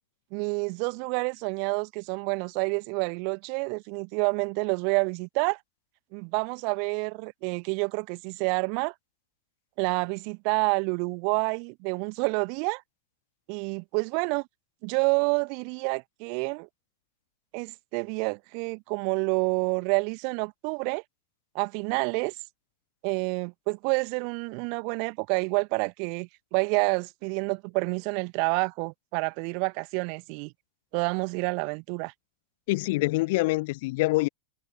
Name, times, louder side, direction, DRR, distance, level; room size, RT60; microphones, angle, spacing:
voice 1, 0.3-5.6 6.1-8.9 9.8-12.8 13.5-14.5 14.8-16.7 17.5-21.0 21.5-22.3 23.0-30.5 30.9-32.1, right 40 dB or more, 45° right, 1.1 m, -28 dB
voice 2, 32.7-34.3, left 22 dB, 50° left, 0.8 m, -25 dB
figure-of-eight pair, 90°, 0 cm